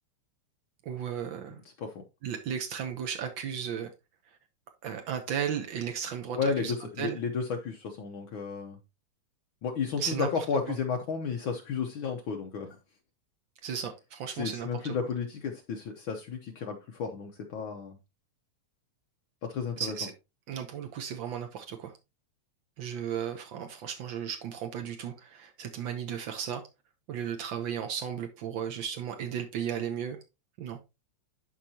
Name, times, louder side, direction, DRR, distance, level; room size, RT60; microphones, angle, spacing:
voice 1, 0.8-1.6 2.2-3.9 4.3-4.4 4.8-7.2 10.0-10.7 13.6-14.9 19.8-20.1 20.5-21.9 22.8-26.6 27.1-30.2 30.6-30.8, right 8 dB, 90° right, 1.0 m, -35 dB
voice 2, 6.4-8.8 9.6-12.8 14.3-18.0 19.4-19.9, left 5 dB, 90° left, 1.1 m, -33 dB
11.5 x 4.8 x 2.8 m
omnidirectional pair, 3.4 m